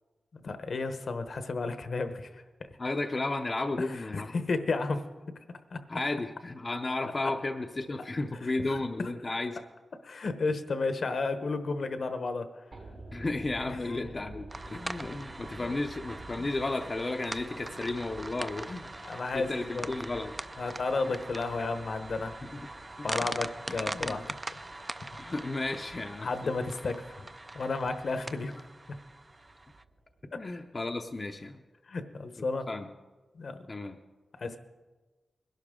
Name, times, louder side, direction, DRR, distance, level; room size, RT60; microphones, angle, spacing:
voice 1, 0.3-2.4 3.9-5.0 5.7-5.8 8.6-8.8 10.0-12.5 13.7-13.8 15.6-15.7 16.4-16.5 19.0-19.9 20.6-22.3 23.0-24.6 26.2-27.3 27.5-28.6 30.3-30.4 31.9-32.7 33.3-33.7 34.4-34.6, left 3 dB, 60° left, 9 dB, 0.9 m, -32 dB
voice 2, 2.8-4.3 5.9-9.6 13.1-18.9 19.3-20.4 21.0-21.2 22.4-22.7 23.0-23.1 23.7-24.3 25.2-26.5 30.4-31.6 32.4-32.9 33.7-34.0, left 2 dB, 35° left, 3 dB, 0.6 m, -34 dB
sound 1, 12.7-30.9 31.2-31.3, right 2 dB, 55° right, 1.4 m, -51 dB
sound 2, 14.5-29.8, right 2 dB, 20° right, 0.4 m, -42 dB
21.0 x 11.5 x 3.7 m, 1.3 s
wide cardioid pair, 130°, 0 cm